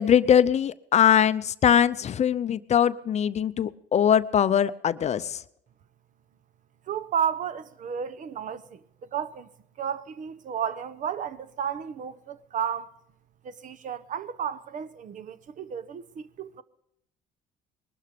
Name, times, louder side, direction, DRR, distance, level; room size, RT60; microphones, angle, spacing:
voice 1, 0.0-5.4, left 9 dB, 40° left, 0.6 m, -22 dB
voice 2, 6.9-8.8 9.1-9.5 9.8-12.9 13.4-16.6, right 8 dB, 50° right, 0.9 m, -32 dB
21.0 x 12.5 x 5.2 m
cardioid pair, 110°, 17 cm